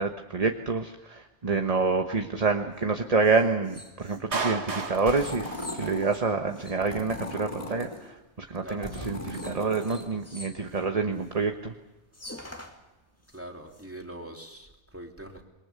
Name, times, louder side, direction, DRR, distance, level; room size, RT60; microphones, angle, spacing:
voice 1, 0.0-11.7, right 4 dB, 35° right, 5 dB, 1.2 m, -27 dB
sound 1, 2.7-8.2 8.9-11.5 11.8-11.9 12.1-13.9, left 1 dB, 10° left, 2.2 m, -48 dB
Clapping, 4.3-6.3, right 4 dB, 65° right, 2.1 m, -33 dB
sound 2, 4.9-6.1 6.8-8.0 8.6-10.1, left 1 dB, 30° left, 5.4 m, -38 dB
voice 2, 8.6-9.2 13.3-15.4, right 1 dB, 10° right, 2 dB, 3.0 m, -43 dB
26.5 x 22.5 x 6.8 m, 1.0 s
omnidirectional pair, 1.2 m